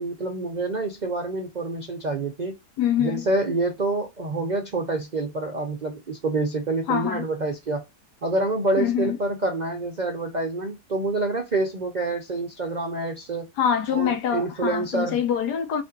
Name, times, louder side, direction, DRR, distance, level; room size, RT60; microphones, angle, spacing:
voice 1, 0.0-2.5 3.0-7.8 8.2-13.5 13.9-15.2, right 2 dB, 60° right, 0.4 m, -27 dB
voice 2, 2.8-3.3 6.9-7.2 8.8-9.2 13.6-15.8, left 8 dB, 85° left, 1.4 m, -24 dB
4.1 x 2.5 x 2.6 m
omnidirectional pair, 1.7 m